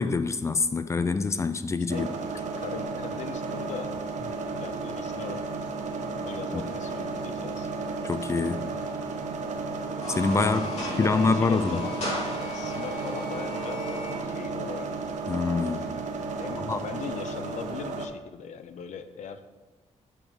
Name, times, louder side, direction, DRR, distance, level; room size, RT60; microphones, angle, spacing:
voice 1, 0.0-2.1 6.5-6.6 8.0-8.7 10.1-10.7 11.0-11.8 15.3-15.9 16.7-16.8, left 4 dB, 25° left, 0.4 m, -25 dB
sound 1, 1.9-18.1, right 3 dB, 80° right, 0.8 m, -33 dB
voice 2, 2.6-3.9 4.6-5.4 6.2-7.7 10.5-12.0 12.5-14.9 16.4-19.4, left 7 dB, 80° left, 0.6 m, -39 dB
sound 2, 9.8-14.2, left 1 dB, 65° left, 2.9 m, -36 dB
6.8 x 6.1 x 5.0 m
wide cardioid pair, 145°, 12 cm